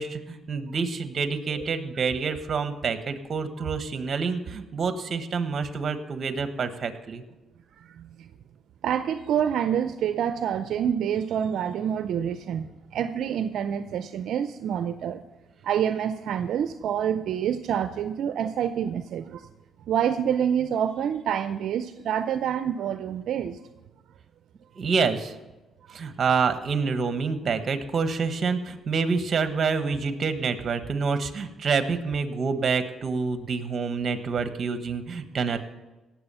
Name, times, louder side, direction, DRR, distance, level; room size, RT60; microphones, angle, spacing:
voice 1, 0.0-7.2 24.8-25.4 25.9-35.6, right 5 dB, 45° right, 9 dB, 1.2 m, -27 dB
voice 2, 7.9-8.3 8.8-15.2 15.6-19.5 19.9-23.6 35.5-35.6, right 9 dB, 75° right, 10 dB, 0.5 m, -27 dB
18.0 x 7.5 x 5.6 m, 1.1 s
cardioid pair, 90°, 0 cm